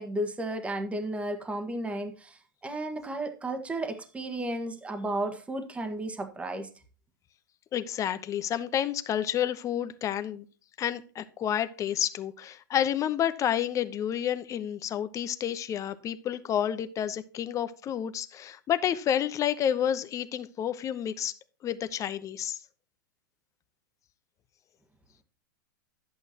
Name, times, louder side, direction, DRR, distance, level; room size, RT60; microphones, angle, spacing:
voice 1, 0.0-6.7, right 1 dB, 10° right, 1.5 m, -33 dB
voice 2, 7.7-10.4 10.8-21.3 21.6-22.6, left 10 dB, 30° left, 0.9 m, -30 dB
10.5 x 8.5 x 2.9 m
hypercardioid pair, 110°, 11 cm